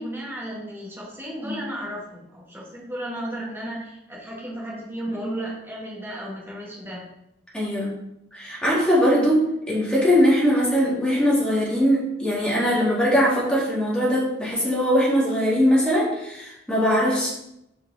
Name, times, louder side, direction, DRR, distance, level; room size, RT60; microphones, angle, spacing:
voice 1, 0.0-7.1, right 1 dB, 10° right, -7 dB, 2.7 m, -34 dB
voice 2, 7.5-8.0 8.3-17.3, equal, 5° left, -7 dB, 2.5 m, -21 dB
5.8 x 5.6 x 4.1 m, 0.83 s
head